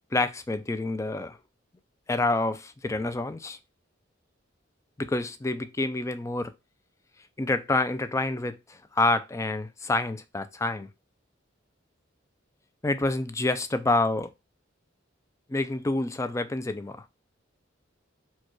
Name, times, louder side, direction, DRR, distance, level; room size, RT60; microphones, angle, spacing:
voice 1, 0.1-1.4 2.1-3.6 5.0-6.5 7.4-10.9 12.8-14.3 15.5-17.1, left 2 dB, 15° left, 0.4 m, -28 dB
4.5 x 2.3 x 4.5 m
head